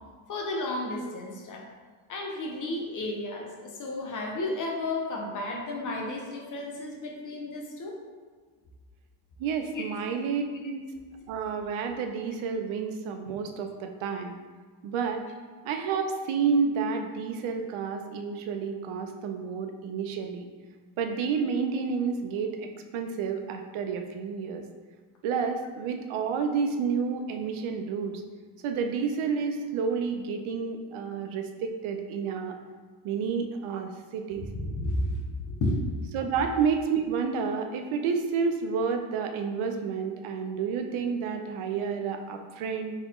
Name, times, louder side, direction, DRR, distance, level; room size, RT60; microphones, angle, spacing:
voice 1, 0.3-1.7 2.1-8.0 9.7-9.8 11.0-11.1 34.5-35.8 40.7-40.9, left 2 dB, 40° left, 0 dB, 0.7 m, -32 dB
voice 2, 9.4-10.8 11.3-14.4 14.8-15.2 15.6-20.5 21.0-24.6 25.2-28.2 28.6-32.6 33.0-34.4 36.1-42.9, right 5 dB, 80° right, 5 dB, 0.6 m, -30 dB
4.2 x 2.9 x 3.6 m, 1.5 s
cardioid pair, 160°, 48 cm